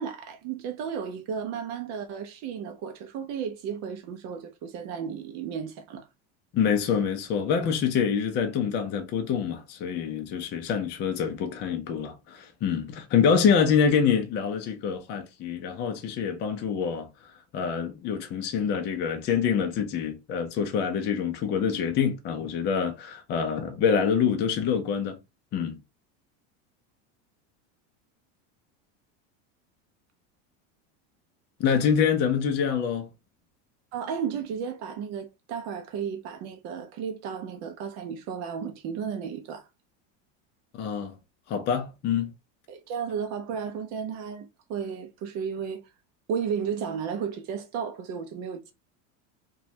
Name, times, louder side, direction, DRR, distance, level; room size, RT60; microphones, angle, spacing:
voice 1, 0.0-6.1 33.9-39.7 42.7-45.8 46.3-48.7, right 7 dB, 45° right, 0.5 m, -33 dB
voice 2, 6.5-17.1 17.5-25.2 25.5-25.8 31.6-33.1 40.7-41.2 41.5-42.3, left 7 dB, 30° left, 0.4 m, -26 dB
2.9 x 2.3 x 2.7 m
supercardioid pair, 145°, 37 cm